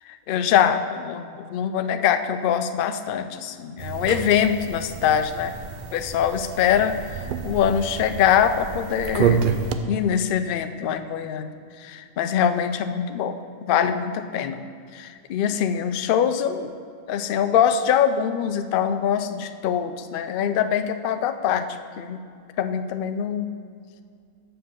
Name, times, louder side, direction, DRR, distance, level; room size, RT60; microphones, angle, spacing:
voice 1, 0.3-5.6 5.9-9.5 9.9-11.5 11.8-13.3 13.7-14.6 14.9-16.7 17.1-21.7 22.0-22.2 22.6-23.5, left 8 dB, 70° left, 9 dB, 0.5 m, -23 dB
sound 1, 3.8-9.8, right 7 dB, 80° right, 0.4 m, -29 dB
7.5 x 5.6 x 6.9 m, 2.2 s
omnidirectional pair, 1.4 m